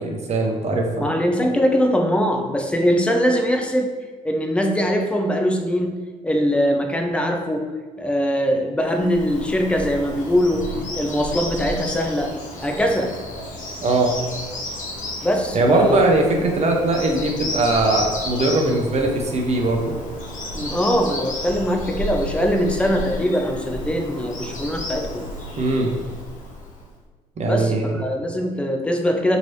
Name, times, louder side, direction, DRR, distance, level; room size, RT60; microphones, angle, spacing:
voice 1, 0.0-1.1 13.8-14.1 15.5-20.0 25.6-25.9 27.4-28.0, right 2 dB, 35° right, 1 dB, 0.7 m, -20 dB
voice 2, 1.0-3.9 4.2-6.0 6.2-7.7 8.0-13.2 15.2-16.0 20.5-25.3 27.4-29.4, equal, 5° left, 3 dB, 0.5 m, -22 dB
Bird vocalization bird call bird song, 8.9-26.9, left 1 dB, 45° left, 1.0 m, -32 dB
3.0 x 2.9 x 2.7 m, 1.4 s
hypercardioid pair, 50°, 19 cm